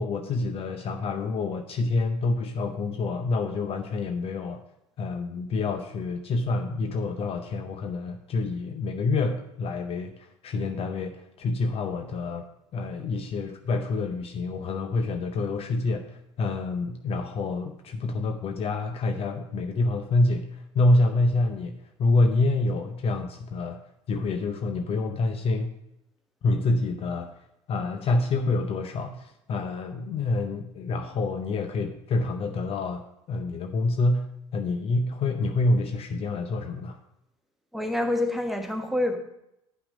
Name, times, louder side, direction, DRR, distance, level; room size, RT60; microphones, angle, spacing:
voice 1, 0.0-4.6 5.0-12.4 12.7-23.8 24.1-25.7 26.4-27.3 27.7-37.0, left 2 dB, 35° left, 7 dB, 0.7 m, -27 dB
voice 2, 37.7-39.2, left 1 dB, ahead, 3 dB, 1.3 m, -27 dB
9.9 x 5.8 x 5.0 m, 0.82 s
figure-of-eight pair, 65°, 16 cm